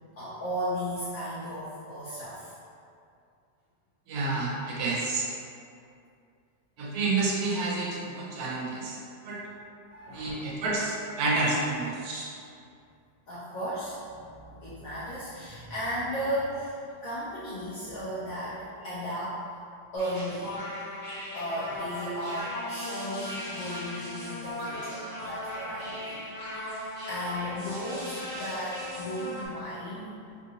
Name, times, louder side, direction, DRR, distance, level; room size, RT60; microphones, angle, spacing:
voice 1, 0.2-2.5 9.9-10.5 13.3-16.7 17.0-19.4 19.9-20.6 21.3-30.1, equal, 85° left, -9 dB, 0.7 m, -35 dB
voice 2, 4.1-5.3 6.8-9.0 9.2-9.4 10.1-12.3, right 3 dB, 70° right, -4 dB, 0.9 m, -29 dB
sound 1, 20.0-29.5, left 1 dB, 35° left, 0.9 m, -38 dB
3.6 x 2.4 x 2.7 m, 2.4 s
omnidirectional pair, 2.0 m